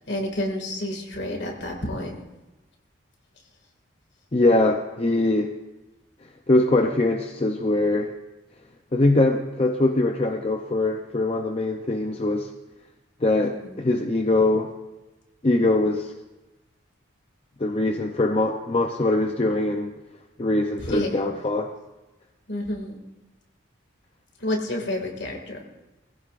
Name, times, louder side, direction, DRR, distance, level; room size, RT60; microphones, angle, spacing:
voice 1, 0.1-2.2 13.4-13.8 20.8-21.2 22.5-23.0 24.4-25.6, left 1 dB, 55° left, 2 dB, 2.2 m, -29 dB
voice 2, 4.3-5.5 6.5-8.1 8.9-12.5 13.2-14.7 15.4-16.1 17.6-19.9 20.4-21.7, left 2 dB, 30° left, 3 dB, 0.6 m, -22 dB
20.0 x 15.5 x 2.5 m, 1.0 s
head